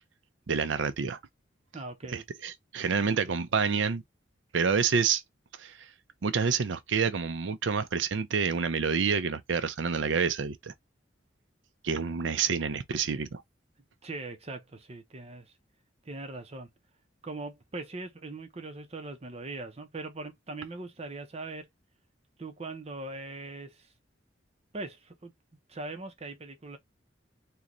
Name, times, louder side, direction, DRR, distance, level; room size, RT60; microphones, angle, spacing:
voice 1, 0.5-1.2 2.1-4.0 4.5-5.2 5.6-5.9 6.2-10.7 11.8-13.4, right 6 dB, 75° right, 0.5 m, -28 dB
voice 2, 1.7-2.2 3.0-3.4 14.0-15.5 16.0-16.7 17.2-21.7 22.4-23.9 24.7-25.3 25.7-26.8, right 2 dB, 35° right, 0.7 m, -41 dB
3.8 x 2.3 x 3.0 m
head